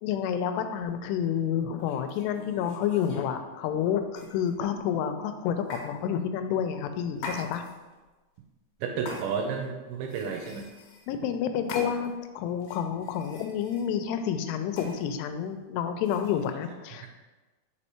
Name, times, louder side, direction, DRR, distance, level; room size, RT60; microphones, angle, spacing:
voice 1, 0.0-7.6 11.1-17.1, left 8 dB, 90° left, 8 dB, 2.7 m, -29 dB
sound 1, 0.8-1.0 1.7-3.3 4.1-4.7 5.7-5.9 7.2-7.9 9.1-9.6 10.0-11.1 11.7-12.2 12.6-13.9 14.7-15.0 16.0-16.5, left 2 dB, 65° left, 2.3 m, -42 dB
voice 2, 8.8-10.7 16.3-16.4, right 6 dB, 80° right, 3 dB, 2.2 m, -32 dB
5.2 x 4.9 x 4.3 m, 1.2 s
omnidirectional pair, 4.7 m